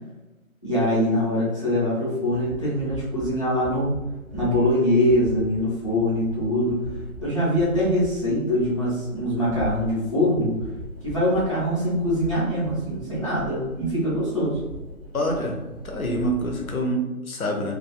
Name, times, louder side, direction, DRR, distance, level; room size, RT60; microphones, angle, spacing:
voice 1, 0.6-3.9 4.3-6.9 7.2-10.5 11.0-14.6, left 1 dB, 20° left, -11 dB, 0.6 m, -23 dB
sound 1, 2.2-16.8, right 1 dB, 20° right, 0.6 m, -41 dB
voice 2, 15.1-15.6 15.8-17.7, right 1 dB, 70° left, 1 dB, 0.6 m, -26 dB
2.4 x 2.3 x 2.3 m, 1.1 s
figure-of-eight pair, 145°, 43 cm